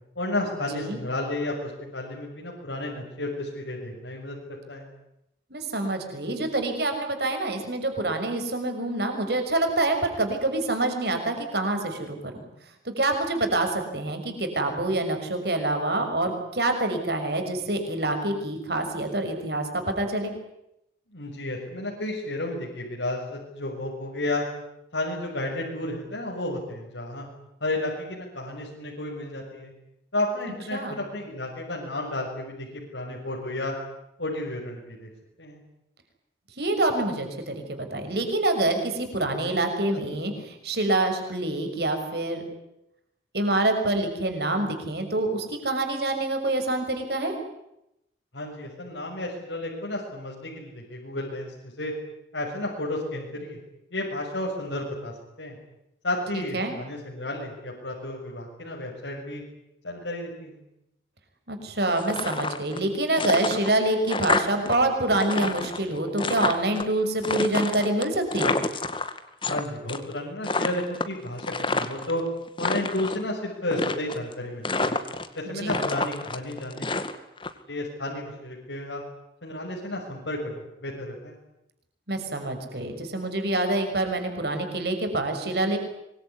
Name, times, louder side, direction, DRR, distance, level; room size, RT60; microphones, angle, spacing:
voice 1, 0.1-4.9 21.1-24.5 24.9-27.2 27.6-29.7 30.1-33.7 34.2-35.1 35.4-35.6 48.3-51.9 52.3-53.6 53.9-55.5 56.0-59.4 59.8-60.6 69.5-72.2 72.6-74.9 75.3-76.9 77.7-79.0 79.4-81.4, left 1 dB, 90° left, -3 dB, 6.7 m, -32 dB
voice 2, 5.5-12.4 12.8-20.3 30.7-31.0 36.6-42.4 43.3-47.4 56.3-56.8 61.5-68.6 75.5-75.9 82.1-85.8, right 2 dB, 60° right, 6 dB, 6.2 m, -26 dB
sound 1, 62.0-62.9 63.1-64.8 65.0-66.8 67.2-69.6 69.9-70.2 70.4-72.1 72.5-73.2 73.7-74.3 74.6-75.4 75.7-77.5, left 3 dB, 25° left, 2.0 m, -28 dB
25.0 x 22.5 x 9.9 m, 0.83 s
head